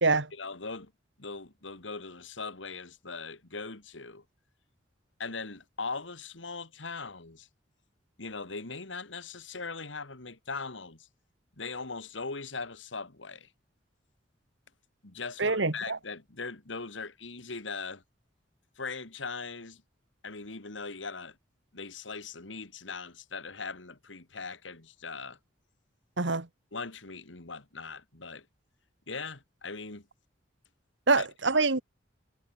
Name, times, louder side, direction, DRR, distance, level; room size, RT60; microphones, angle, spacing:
voice 1, 0.3-0.9 1.2-4.2 5.2-7.5 8.2-11.1 11.6-13.5 15.0-18.0 18.8-19.8 20.2-21.4 21.7-25.4 26.7-28.5 29.1-30.1 31.2-31.3, left 4 dB, 90° left, 2.5 m, -40 dB
voice 2, 15.4-16.0 26.2-26.5 31.1-31.8, right 3 dB, 75° right, 1.8 m, -25 dB
head